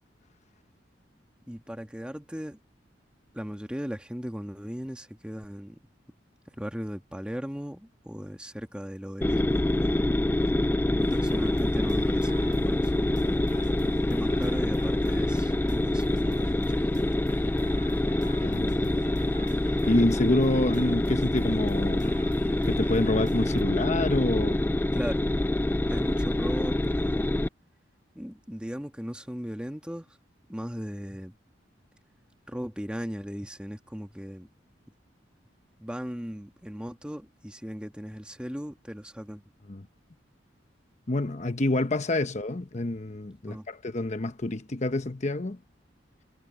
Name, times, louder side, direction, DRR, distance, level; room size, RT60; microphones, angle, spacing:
voice 1, 1.5-2.6 3.3-5.8 6.6-10.0 10.9-13.5 14.1-17.1 23.7-23.8 24.9-25.2 25.9-27.3 28.1-30.1 30.5-31.3 32.5-34.5 35.8-39.4 43.5-43.7, equal, 5° right, 1.6 m, -37 dB
sound 1, 9.2-27.5, left 1 dB, 10° left, 0.3 m, -26 dB
sound 2, 11.0-23.6, right 1 dB, 45° right, 3.0 m, -46 dB
voice 2, 18.4-19.1 19.9-22.1 22.6-24.6 39.7-39.9 41.1-45.6, left 2 dB, 40° left, 0.9 m, -27 dB
head